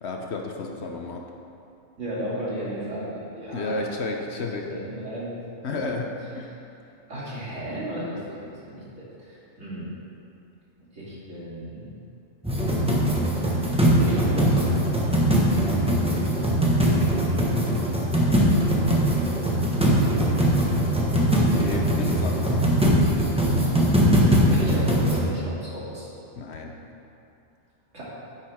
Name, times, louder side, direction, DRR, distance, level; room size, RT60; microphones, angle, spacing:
voice 1, 0.0-1.3 3.5-4.7 5.6-6.1 6.3-6.5 21.4-22.7 26.4-26.7, left 3 dB, 60° left, 2 dB, 1.0 m, -32 dB
voice 2, 2.0-3.9 4.4-5.4 5.7-5.8 7.1-9.8 10.9-11.9 12.6-13.6 14.0-14.6 23.6-26.1 27.9-28.0, equal, 65° right, -8 dB, 3.0 m, -35 dB
sound 1, 12.4-25.2, equal, 5° right, 1.2 m, -21 dB
10.0 x 9.2 x 3.6 m, 2.6 s
omnidirectional pair, 1.4 m